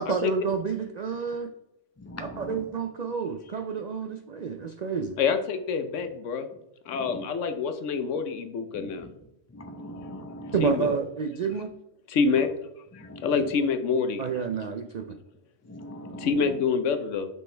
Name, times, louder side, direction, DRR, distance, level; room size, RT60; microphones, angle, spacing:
voice 1, 0.0-1.5 2.4-5.2 10.5-11.7 14.2-15.1, right 5 dB, 65° right, 6 dB, 0.4 m, -29 dB
voice 2, 2.0-2.6 6.9-7.2 8.8-9.1 9.5-10.6 13.0-13.3 15.7-16.6, equal, 15° left, 5 dB, 0.6 m, -41 dB
voice 3, 5.2-6.5 6.9-9.1 10.6-10.9 12.1-12.5 13.2-14.2 16.2-17.3, left 5 dB, 85° left, 9 dB, 1.1 m, -26 dB
6.3 x 5.3 x 3.3 m, 0.83 s
omnidirectional pair, 1.2 m